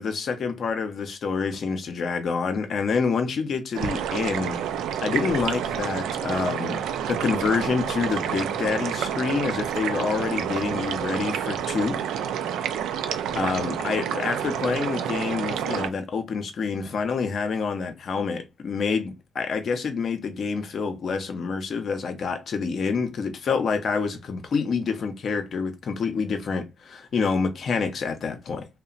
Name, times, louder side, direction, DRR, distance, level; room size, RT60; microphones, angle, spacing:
voice 1, 0.0-4.6 5.0-12.0 13.3-28.7, left 5 dB, 55° left, 0.6 m, -27 dB
sound 1, 3.7-15.9, right 9 dB, 85° right, 0.4 m, -29 dB
2.8 x 2.0 x 2.4 m
cardioid pair, 90°, 0 cm